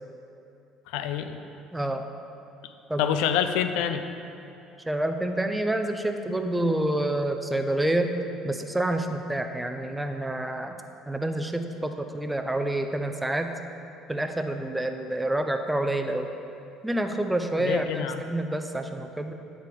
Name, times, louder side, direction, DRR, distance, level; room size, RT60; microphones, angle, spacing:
voice 1, 0.9-1.4 3.0-4.0 17.6-18.2, left 9 dB, 65° left, 9 dB, 0.4 m, -26 dB
voice 2, 1.7-2.1 2.9-3.1 4.9-8.2 8.4-10.8 11.1-13.5 14.1-16.3 16.8-19.3, right 1 dB, 10° right, 6 dB, 0.6 m, -28 dB
8.9 x 5.0 x 5.2 m, 2.7 s
figure-of-eight pair, 55°, 0 cm